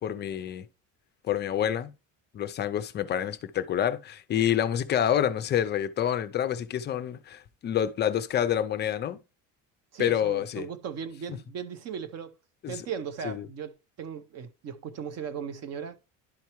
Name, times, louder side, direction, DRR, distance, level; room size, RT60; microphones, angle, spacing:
voice 1, 0.0-0.7 1.3-1.9 2.3-9.2 10.0-10.6 12.6-12.9 13.2-13.5, left 10 dB, 30° left, 0.4 m, -28 dB
voice 2, 9.9-12.3 12.7-16.0, right 7 dB, 45° right, 0.8 m, -37 dB
11.0 x 4.5 x 3.0 m
cardioid pair, 170°, 35 cm